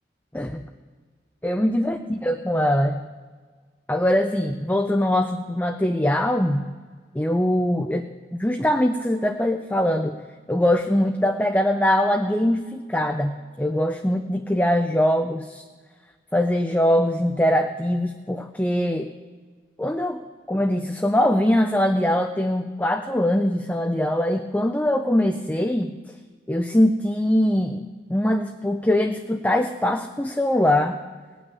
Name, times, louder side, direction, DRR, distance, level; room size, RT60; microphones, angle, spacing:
voice 1, 1.4-3.0 3.9-6.6 7.1-8.1 8.4-10.2 10.5-15.6 16.3-19.1 19.8-20.2 20.5-25.9 26.5-31.0, left 1 dB, 10° left, 5 dB, 0.5 m, -22 dB
18.5 x 6.1 x 9.4 m, 1.5 s
head